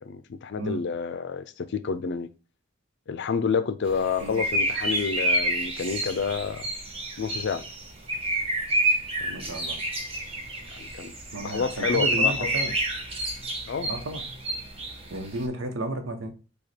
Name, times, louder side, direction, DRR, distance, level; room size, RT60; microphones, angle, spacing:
voice 1, 0.0-2.3 3.1-6.7 7.2-7.6 9.3-9.6 10.8-11.1 11.4-12.7 13.7-13.9, left 5 dB, 60° left, 0.4 m, -29 dB
sound 1, 3.9-15.5, right 1 dB, 30° right, 0.9 m, -29 dB
voice 2, 9.3-9.8 11.3-12.7 13.8-14.2 15.1-16.3, right 1 dB, 85° right, 0.9 m, -33 dB
5.1 x 2.3 x 4.3 m
head